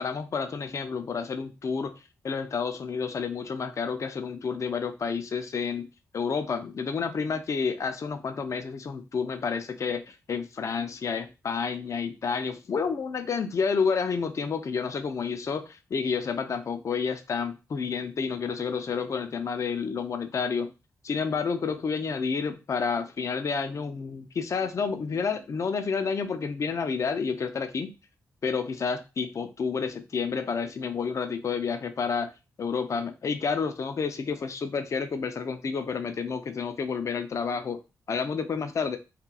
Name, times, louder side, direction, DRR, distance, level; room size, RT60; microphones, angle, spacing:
voice 1, 0.0-2.0 2.2-5.9 6.1-20.7 21.0-27.9 28.4-32.3 32.6-37.8 38.1-39.0, left 5 dB, 50° left, 9 dB, 0.4 m, -30 dB
2.9 x 2.3 x 2.3 m, 0.28 s
cardioid pair, 65°, 6 cm